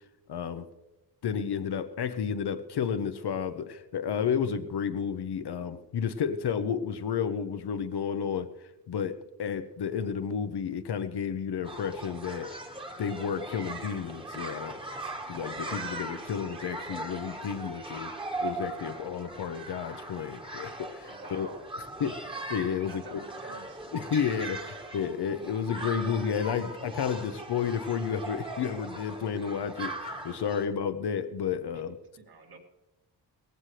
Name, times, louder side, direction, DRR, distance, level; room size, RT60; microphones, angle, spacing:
voice 1, 0.3-0.7 1.2-12.5 13.0-14.8 15.3-18.1 18.4-21.5 22.0-22.1 22.5-23.2 23.9-32.0, left 7 dB, 65° left, 9 dB, 0.8 m, -31 dB
sound 1, 11.6-30.7, right 2 dB, 10° right, 1.4 m, -39 dB
voice 2, 21.1-21.6 22.9-23.8 31.7-31.8 32.2-32.6, right 4 dB, 55° right, 0 dB, 2.4 m, -47 dB
18.0 x 15.5 x 3.3 m, 1.0 s
cardioid pair, 105°, 43 cm